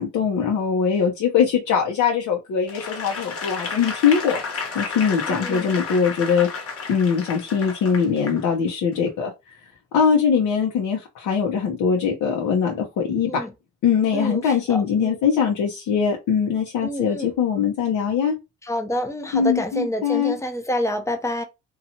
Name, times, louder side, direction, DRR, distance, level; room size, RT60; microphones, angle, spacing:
voice 1, 0.0-6.5 6.9-9.3 9.9-13.4 13.8-18.4 19.3-20.3, left 6 dB, 80° left, 0.7 m, -22 dB
Applause / Crowd, 2.7-8.4 8.9-9.1, left 5 dB, 50° left, 1.0 m, -32 dB
voice 2, 5.3-5.7 13.2-13.5 14.1-15.2 16.8-17.3 18.6-21.4, left 1 dB, 10° left, 0.6 m, -28 dB
2.8 x 2.3 x 2.7 m
cardioid pair, 90°, 30 cm